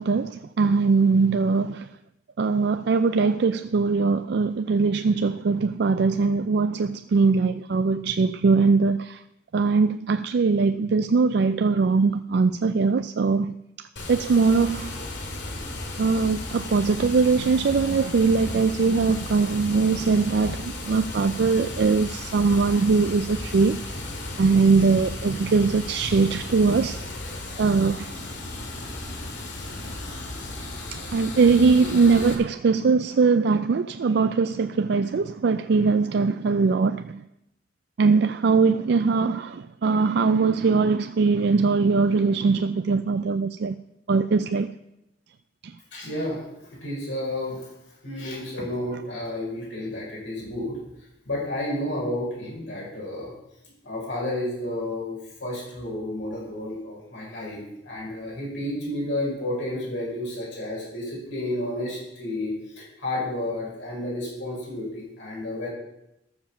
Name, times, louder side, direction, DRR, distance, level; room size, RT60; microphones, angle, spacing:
voice 1, 0.0-1.9 2.4-9.2 9.5-13.5 14.1-14.9 16.0-24.0 24.4-27.1 27.6-28.1 30.9-37.2 38.0-43.7 44.1-44.7 45.6-45.7, right 4 dB, 60° right, 0.4 m, -21 dB
Water, 14.0-32.3, left 2 dB, 65° left, 2.2 m, -35 dB
voice 2, 45.9-47.7 48.0-50.8 51.3-53.3 53.8-65.7, left 1 dB, 85° left, 5.9 m, -31 dB
13.0 x 7.1 x 7.1 m
head